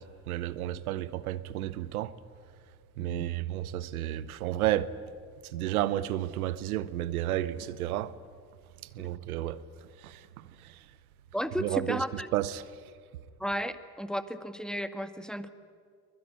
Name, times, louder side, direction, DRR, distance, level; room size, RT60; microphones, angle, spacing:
voice 1, 0.0-2.1 3.0-4.9 5.4-8.1 8.8-10.9 11.6-12.6, right 13 dB, 85° right, 0.9 m, -32 dB
voice 2, 11.3-12.3 13.4-15.5, equal, ahead, 1.8 m, -33 dB
23.5 x 21.0 x 9.7 m
hypercardioid pair, 50°, 42 cm